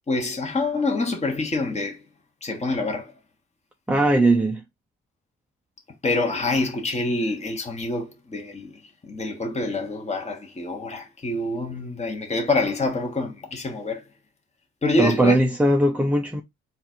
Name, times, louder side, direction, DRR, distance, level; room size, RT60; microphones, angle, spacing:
voice 1, 0.1-2.0 2.4-3.1 6.0-14.0 14.8-15.4, left 2 dB, 20° left, 1.2 m, -26 dB
voice 2, 3.9-4.6 15.0-16.4, right 1 dB, 5° right, 0.5 m, -19 dB
3.9 x 2.5 x 4.3 m
cardioid pair, 90°, 30 cm